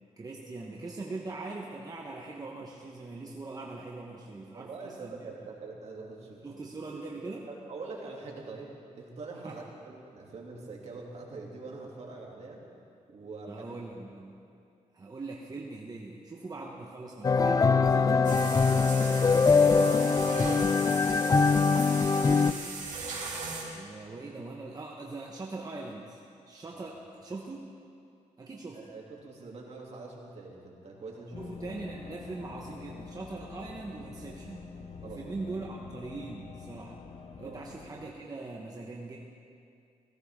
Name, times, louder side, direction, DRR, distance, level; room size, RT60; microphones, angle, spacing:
voice 1, 0.2-5.3 6.4-7.5 9.4-9.6 13.5-14.4 14.9-19.2 20.0-21.6 22.0-22.7 23.7-26.2 26.5-27.6 28.4-28.8 31.4-34.7 35.0-37.0 37.4-39.2, right 3 dB, 30° right, -2 dB, 1.2 m, -41 dB
voice 2, 4.5-6.6 7.5-12.7 13.1-13.7 26.7-27.0 28.7-31.4 35.0-35.3 37.4-37.6, right 3 dB, 60° right, -2 dB, 2.7 m, -44 dB
sound 1, 17.2-22.5, left 4 dB, 30° left, 0.4 m, -23 dB
sound 2, 18.2-23.6, right 4 dB, 85° right, 2.5 m, -38 dB
sound 3, 31.3-38.1, left 5 dB, 55° left, 1.0 m, -46 dB
16.5 x 16.0 x 3.7 m, 2.5 s
cardioid pair, 90°, 13 cm